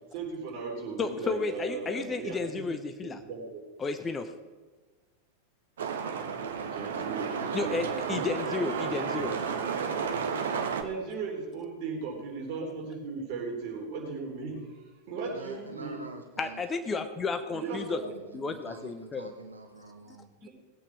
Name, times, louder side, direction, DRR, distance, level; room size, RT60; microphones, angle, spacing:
voice 1, 0.1-2.7 3.0-3.6 6.7-8.9 10.7-16.0 17.5-18.2 20.4-20.5, right 4 dB, 45° right, -1 dB, 3.7 m, -37 dB
voice 2, 1.0-3.2 3.8-4.3 7.5-9.4 16.4-18.0 18.3-19.3 20.1-20.2, left 4 dB, 20° left, 9 dB, 0.8 m, -32 dB
sound 1, 5.8-10.8, right 6 dB, 65° right, 1.2 m, -32 dB
voice 3, 15.2-16.6 17.6-20.3, right 3 dB, 80° right, 4 dB, 1.0 m, -46 dB
18.5 x 8.6 x 4.8 m, 1.3 s
figure-of-eight pair, 90°, 0 cm